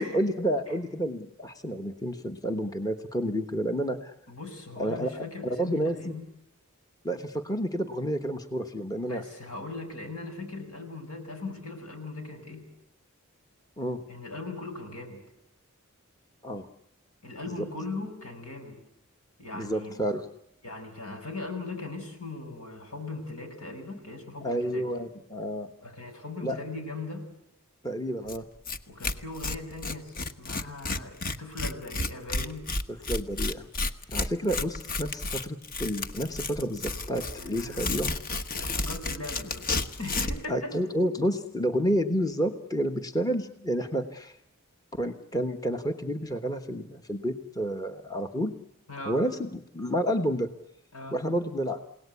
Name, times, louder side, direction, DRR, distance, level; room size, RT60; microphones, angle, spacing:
voice 1, 0.0-4.1 4.8-6.1 7.0-9.2 13.8-14.0 16.4-16.7 17.6-17.7 19.5-20.3 24.4-25.7 26.4-26.6 27.8-28.5 32.9-33.6 34.1-38.1 40.5-44.4 45.0-48.5 49.0-50.5 51.1-51.8, equal, 15° left, 7 dB, 1.2 m, -30 dB
voice 2, 4.3-6.3 8.8-12.7 14.1-15.2 17.2-18.8 19.4-20.0 20.6-24.9 25.8-27.3 28.9-32.7 37.3-38.1 38.6-39.7 40.0-40.7 48.9-49.2 50.9-51.2, left 2 dB, 80° left, 6 dB, 6.4 m, -39 dB
Tearing, 28.3-28.4 28.7-28.8 29.0-40.5, left 2 dB, 40° left, 1.2 m, -32 dB
29.5 x 18.0 x 8.3 m, 0.79 s
head